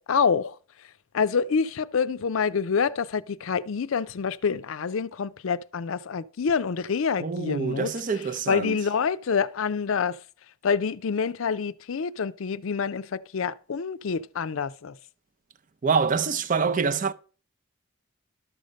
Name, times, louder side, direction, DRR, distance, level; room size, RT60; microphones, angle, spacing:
voice 1, 0.1-0.5 1.1-7.9 8.5-10.2 10.6-14.9, left 6 dB, 70° left, 0.5 m, -27 dB
voice 2, 7.2-8.8 15.8-17.1, right 5 dB, 40° right, 0.5 m, -25 dB
12.0 x 6.5 x 5.2 m
head